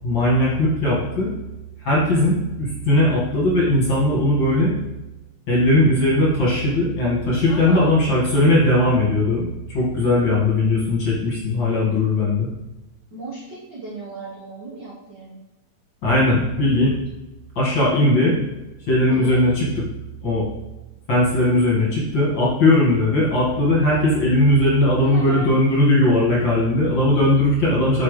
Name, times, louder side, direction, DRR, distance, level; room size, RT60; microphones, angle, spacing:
voice 1, 0.0-1.3 1.8-4.7 5.5-9.5 9.7-12.5 16.0-16.9 17.6-18.4 18.9-19.7 20.2-20.5 21.1-28.0, left 1 dB, 40° left, -6 dB, 1.9 m, -18 dB
voice 2, 7.5-7.9 13.1-15.4 19.1-19.4 25.0-25.5, right 2 dB, 85° right, -7 dB, 0.9 m, -35 dB
7.5 x 6.1 x 3.3 m, 1.0 s
omnidirectional pair, 4.2 m